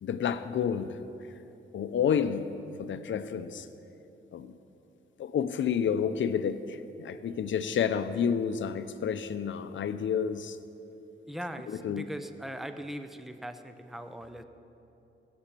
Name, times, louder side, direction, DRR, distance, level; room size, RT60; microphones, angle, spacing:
voice 1, 0.0-1.0 1.7-3.7 4.3-4.5 5.2-10.6 11.7-12.0, left 7 dB, 65° left, 11 dB, 0.7 m, -30 dB
voice 2, 11.3-14.4, equal, ahead, 9 dB, 0.6 m, -40 dB
16.5 x 7.1 x 8.4 m, 2.9 s
wide cardioid pair, 140°, 21 cm